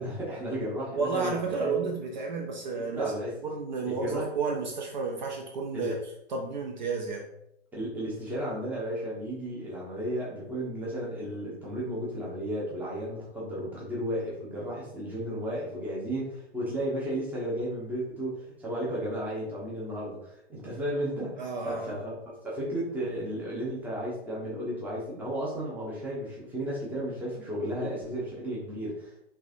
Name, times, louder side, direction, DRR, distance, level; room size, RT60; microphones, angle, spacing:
voice 1, 0.0-1.8 2.9-3.3 3.9-4.3 5.7-5.9 7.7-22.1 22.4-29.3, equal, 5° right, -6 dB, 0.8 m, -34 dB
voice 2, 0.9-3.1 3.4-6.0 6.3-7.3 21.4-22.0, right 4 dB, 45° right, 1 dB, 0.6 m, -31 dB
3.4 x 3.3 x 2.5 m, 0.75 s
figure-of-eight pair, 115°, 32 cm